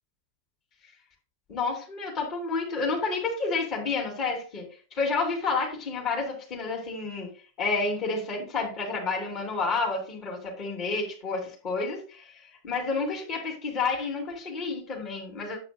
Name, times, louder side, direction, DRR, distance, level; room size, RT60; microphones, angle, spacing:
voice 1, 1.5-7.3 7.6-15.6, left 4 dB, 35° left, 1 dB, 3.2 m, -30 dB
9.4 x 8.6 x 2.4 m, 0.36 s
figure-of-eight pair, 90°, 0 cm